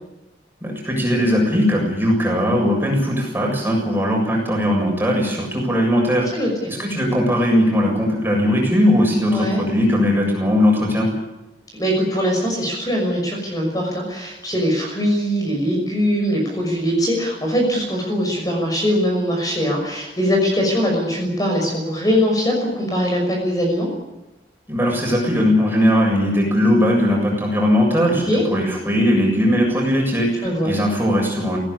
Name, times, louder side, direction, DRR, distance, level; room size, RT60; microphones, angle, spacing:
voice 1, 0.6-6.3 6.8-11.1 24.7-31.6, equal, 10° right, -1 dB, 7.3 m, -19 dB
voice 2, 9.3-9.6 11.8-23.9 28.1-28.4 30.4-30.7, equal, 20° left, 1 dB, 6.1 m, -21 dB
20.5 x 17.5 x 10.0 m, 0.99 s
head